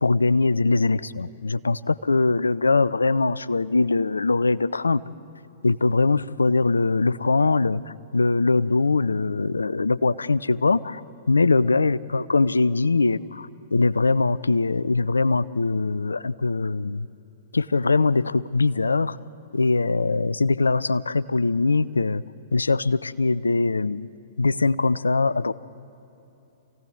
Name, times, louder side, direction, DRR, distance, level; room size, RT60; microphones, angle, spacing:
voice 1, 0.0-5.0 5.6-11.0 11.3-17.1 17.5-19.2 19.5-22.2 22.5-24.1 24.4-25.5, left 3 dB, 80° left, 20 dB, 0.5 m, -22 dB
27.5 x 17.0 x 9.4 m, 2.8 s
figure-of-eight pair, 105°, 0 cm